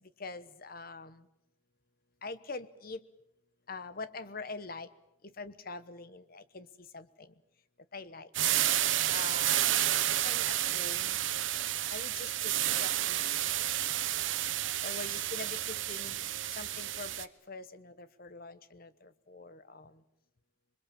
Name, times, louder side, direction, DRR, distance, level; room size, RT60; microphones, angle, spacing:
voice 1, 0.2-1.3 2.2-3.0 3.7-4.9 5.4-6.7 6.9-7.3 7.9-8.3 9.1-9.7 10.1-11.2 11.9-13.4 14.8-16.2 16.5-20.0, left 3 dB, 50° left, 13 dB, 1.1 m, -44 dB
sound 1, 8.3-17.3, right 12 dB, 80° right, 1.1 m, -30 dB
27.0 x 22.0 x 7.5 m, 0.82 s
head